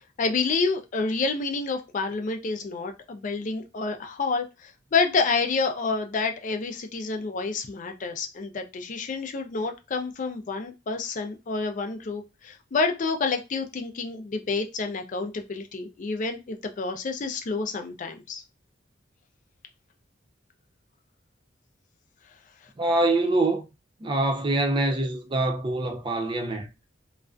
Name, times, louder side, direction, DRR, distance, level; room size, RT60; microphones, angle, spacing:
voice 1, 0.2-18.4, left 4 dB, 40° left, 0.4 m, -28 dB
voice 2, 22.8-23.6 24.0-26.7, right 2 dB, 25° right, 0.4 m, -24 dB
2.4 x 2.1 x 2.4 m
head